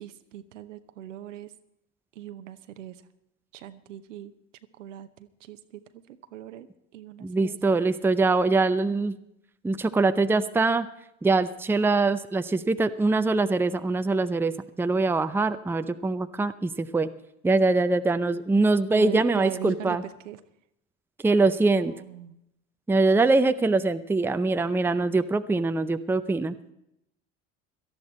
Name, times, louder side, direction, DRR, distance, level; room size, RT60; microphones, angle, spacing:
voice 1, 0.0-1.5 2.1-3.0 3.5-4.3 4.8-6.7 6.9-7.6 18.9-20.4 21.8-22.4, right 11 dB, 75° right, 11 dB, 0.9 m, -40 dB
voice 2, 7.2-9.2 9.6-10.9 11.2-17.1 17.4-20.0 21.2-21.9 22.9-26.5, right 3 dB, 5° right, 11 dB, 0.6 m, -23 dB
18.0 x 13.0 x 4.3 m, 0.80 s
figure-of-eight pair, 65°, 38 cm